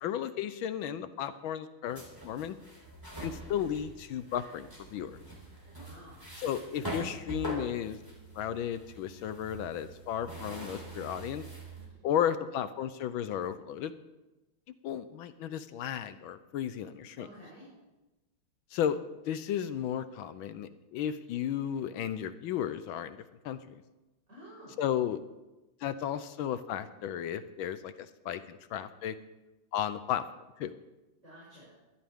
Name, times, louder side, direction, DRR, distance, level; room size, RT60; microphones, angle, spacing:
voice 1, 0.0-2.6 3.2-5.1 6.4-8.0 8.3-11.4 12.0-13.9 14.8-17.3 18.7-19.0 19.3-23.8 24.8-25.2 25.8-29.1 29.7-30.2 30.6-30.7, left 10 dB, 75° left, 12 dB, 1.4 m, -34 dB
sound 1, 1.9-11.9, right 2 dB, 10° right, 3.4 m, -44 dB
voice 2, 5.7-6.2 17.2-17.7 24.3-24.8 31.2-31.7, equal, 35° right, -9 dB, 6.6 m, -51 dB
20.5 x 12.5 x 3.6 m, 1.0 s
omnidirectional pair, 2.3 m